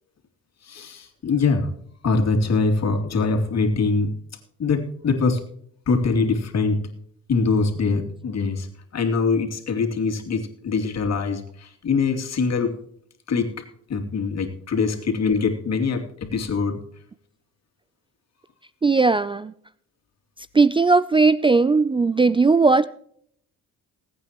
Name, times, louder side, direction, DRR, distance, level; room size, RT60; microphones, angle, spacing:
voice 1, 0.6-1.7 2.0-4.1 4.6-5.4 5.9-6.8 7.3-8.7 8.9-12.8 13.3-13.5 13.9-16.8, left 4 dB, 50° left, 2.7 m, -23 dB
voice 2, 18.8-19.5 20.5-22.9, right 4 dB, 15° right, 0.4 m, -17 dB
20.5 x 8.8 x 3.0 m
supercardioid pair, 70°, 33 cm